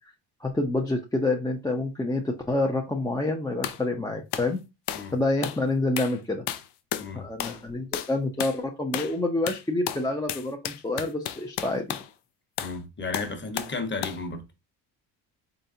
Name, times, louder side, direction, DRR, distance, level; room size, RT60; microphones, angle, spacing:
voice 1, 0.4-4.6 5.1-6.4 7.1-11.8, left 2 dB, 10° left, 0.6 m, -27 dB
sound 1, 3.6-3.8 4.3-4.5 4.9-5.1 5.4-5.6 6.0-6.2 6.5-7.1 7.4-7.6 7.9-8.1 8.4-8.6 8.9-9.2 9.5-12.1 12.6-12.8 13.1-13.8 14.0-14.2, left 11 dB, 70° left, 0.7 m, -33 dB
voice 2, 7.0-7.3 12.6-14.4, left 3 dB, 25° left, 1.2 m, -33 dB
3.9 x 3.3 x 2.7 m
supercardioid pair, 80°, 43 cm